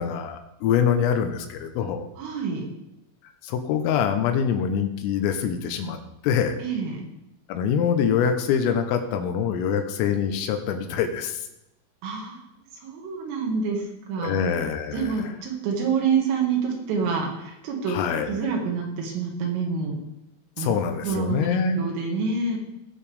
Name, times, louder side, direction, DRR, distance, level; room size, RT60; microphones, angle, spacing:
voice 1, 0.0-2.1 3.4-6.0 6.2-6.6 7.5-11.4 14.2-15.1 17.9-18.3 20.6-21.8, left 7 dB, 85° left, 7 dB, 3.6 m, -24 dB
voice 2, 2.2-2.7 6.6-7.0 12.0-12.4 12.8-14.4 14.9-18.0 18.3-20.0 20.6-22.6, right 5 dB, 80° right, 0 dB, 4.5 m, -27 dB
18.5 x 7.3 x 3.4 m, 0.86 s
omnidirectional pair, 5.9 m